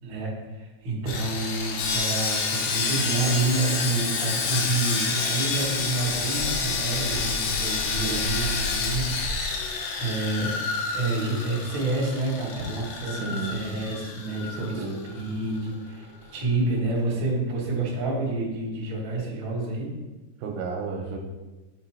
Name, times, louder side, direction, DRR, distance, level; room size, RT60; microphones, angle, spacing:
voice 1, 0.0-10.6 10.9-19.9, right 2 dB, 40° right, -5 dB, 1.9 m, -29 dB
Sawing, 1.1-15.3 15.6-15.8 16.2-16.3, left 4 dB, 75° left, 2.7 m, -29 dB
voice 2, 8.0-8.4 13.1-13.6 14.6-15.0 20.4-21.2, right 5 dB, 85° right, 1 dB, 2.5 m, -33 dB
9.2 x 3.2 x 4.4 m, 1.2 s
omnidirectional pair, 4.6 m